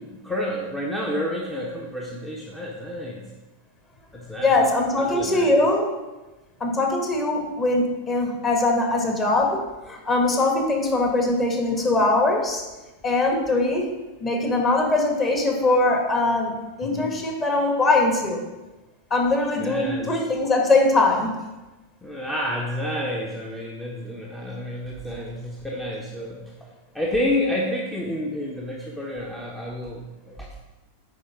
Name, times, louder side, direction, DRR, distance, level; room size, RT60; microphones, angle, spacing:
voice 1, 0.0-3.3 4.1-4.6 5.1-5.5 16.8-17.1 19.6-20.1 22.0-26.5 26.9-30.6, left 1 dB, 5° left, -2 dB, 1.1 m, -29 dB
voice 2, 4.4-5.9 6.6-12.6 13.0-13.9 14.2-18.4 19.1-21.4, left 2 dB, 25° left, 2 dB, 1.9 m, -21 dB
9.9 x 4.3 x 6.1 m, 1.1 s
figure-of-eight pair, 90°, 0 cm